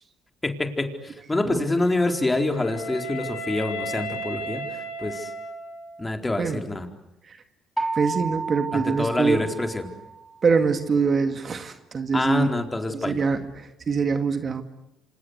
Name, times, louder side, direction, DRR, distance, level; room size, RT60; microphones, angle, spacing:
voice 1, 0.4-4.6 5.0-5.3 6.0-6.9 8.7-9.9 12.1-13.2, left 2 dB, 15° left, 5 dB, 4.3 m, -26 dB
Wind instrument woodwind instrument, 1.8-6.0, right 1 dB, 90° left, 7.6 m, -35 dB
sound 1, 7.8-10.5, right 3 dB, 10° right, 3.7 m, -32 dB
voice 2, 7.9-9.4 10.4-12.5 13.0-14.6, right 5 dB, 40° right, 8 dB, 2.2 m, -24 dB
27.0 x 27.0 x 8.2 m, 0.91 s
supercardioid pair, 70°, 0 cm